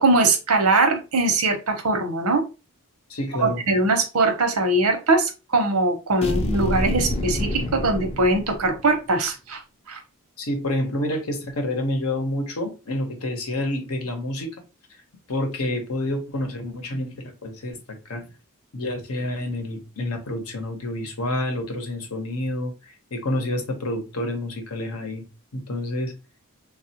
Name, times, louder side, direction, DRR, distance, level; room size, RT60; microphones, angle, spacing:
voice 1, 0.0-2.4 3.4-9.6 9.9-10.0, right 2 dB, 85° right, 0.8 m, -21 dB
voice 2, 3.1-3.6 10.4-14.6 15.3-17.8 18.0-18.3 18.7-25.2 25.5-26.1, left 1 dB, 80° left, 0.9 m, -28 dB
sound 1, 6.2-9.0, left 1 dB, 30° left, 0.5 m, -27 dB
3.2 x 2.4 x 2.8 m
head